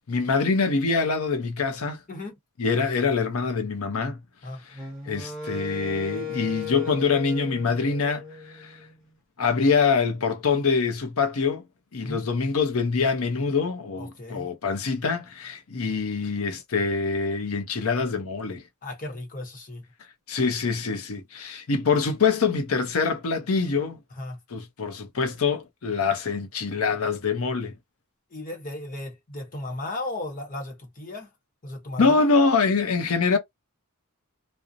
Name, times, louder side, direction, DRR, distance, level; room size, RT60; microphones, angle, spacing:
voice 1, 0.1-2.0 2.6-4.2 4.7-4.8 5.1-8.2 8.5-8.7 9.4-11.6 11.9-18.6 20.3-24.0 24.5-27.7 32.0-33.4, left 4 dB, 75° left, 0.6 m, -24 dB
voice 2, 2.1-2.4 4.4-4.6 12.0-12.3 13.9-14.5 18.8-19.8 24.1-24.4 28.3-31.3 31.6-32.3, left 2 dB, 40° left, 0.9 m, -35 dB
Wind instrument woodwind instrument, 4.7-9.0, left 6 dB, ahead, 1.1 m, -36 dB
2.5 x 2.0 x 2.6 m
head